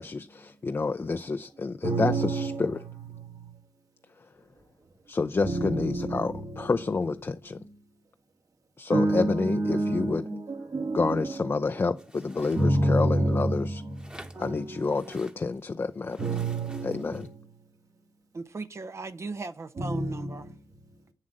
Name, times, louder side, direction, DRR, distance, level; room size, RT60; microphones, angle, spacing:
voice 1, 0.0-2.8 5.1-7.6 8.8-10.2 10.9-13.8 14.4-16.3 16.8-17.3, left 4 dB, 40° left, 0.5 m, -29 dB
voice 2, 1.8-2.6 5.4-6.4 8.9-11.3 12.6-13.6 14.4-14.9 16.2-17.2 19.8-20.3, right 2 dB, 65° right, 2.2 m, -27 dB
sound 1, 12.0-13.0 13.9-15.6 16.1-17.3, right 1 dB, 15° right, 1.2 m, -49 dB
voice 3, 18.3-20.5, right 3 dB, 45° right, 0.7 m, -37 dB
8.5 x 7.6 x 7.6 m
wide cardioid pair, 85°, 6 cm